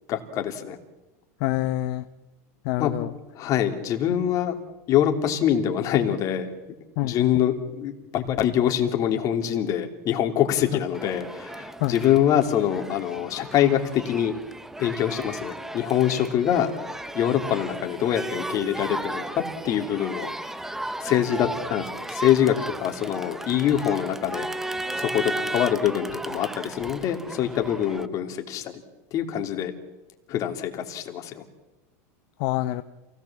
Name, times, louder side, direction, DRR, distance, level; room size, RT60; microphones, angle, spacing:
voice 1, 0.1-0.8 2.8-2.9 3.3-4.5 4.9-6.5 7.0-14.3 14.8-16.7 17.1-20.3 21.0-24.5 24.9-28.7 29.1-29.7 30.3-31.4, left 10 dB, 40° left, 5 dB, 2.9 m, -24 dB
voice 2, 1.4-2.1 2.6-3.1 7.0-7.3 11.8-12.1 32.4-32.8, left 16 dB, 60° left, 10 dB, 0.9 m, -26 dB
Crowd, 10.9-28.1, right 1 dB, 5° right, 0.9 m, -35 dB
28.0 x 17.5 x 7.4 m, 1.1 s
supercardioid pair, 130°, 9 cm